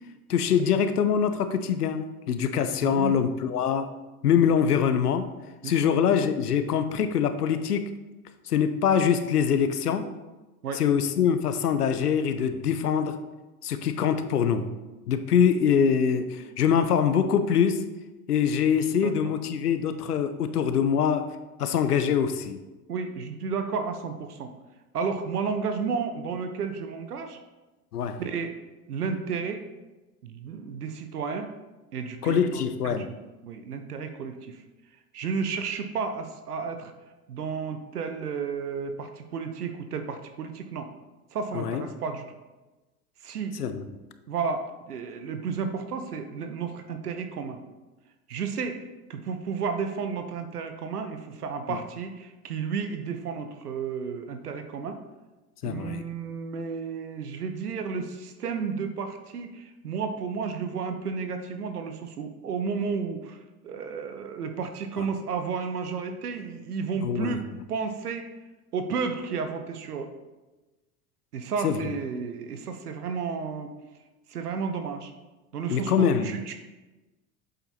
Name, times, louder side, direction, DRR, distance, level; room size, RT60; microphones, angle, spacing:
voice 1, 0.3-3.9 4.2-5.3 5.6-7.9 8.5-10.1 10.7-13.2 13.6-14.7 15.1-17.8 18.3-21.3 21.6-22.6 27.9-28.2 32.2-33.1 41.5-41.8 43.6-43.9 51.7-51.8 55.6-56.0 67.0-67.4 71.6-71.8 75.7-76.3, left 7 dB, 90° left, 10 dB, 0.7 m, -24 dB
voice 2, 2.8-3.2 5.6-5.8 10.6-10.8 16.4-16.6 19.0-19.3 22.9-24.5 24.9-27.4 28.2-28.5 28.9-29.6 30.2-31.5 31.9-32.4 32.8-34.6 35.1-36.9 37.3-40.9 41.3-42.2 43.2-43.6 44.3-47.6 48.3-48.8 49.1-55.0 55.6-67.4 67.7-68.3 68.7-70.1 71.3-73.7 74.3-75.1 75.5-76.5, right 5 dB, 90° right, 7 dB, 0.9 m, -32 dB
7.9 x 7.8 x 2.8 m, 1.1 s
hypercardioid pair, 80°, 45 cm